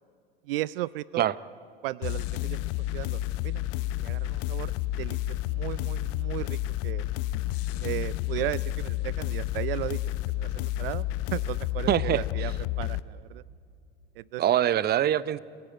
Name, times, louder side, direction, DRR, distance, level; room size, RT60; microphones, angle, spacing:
voice 1, 0.5-1.3 1.8-2.6 2.9-3.6 4.0-4.7 5.0-7.1 7.8-10.0 10.4-11.1 11.3-12.5 12.8-13.4 14.2-14.4, right 17 dB, 70° right, 20 dB, 0.5 m, -35 dB
sound 1, 2.0-13.0, left 15 dB, 55° left, 0.7 m, -30 dB
voice 2, 11.9-12.5 14.4-15.4, right 11 dB, 35° right, 18 dB, 0.7 m, -24 dB
27.0 x 15.0 x 8.9 m, 2.4 s
hypercardioid pair, 80°, 29 cm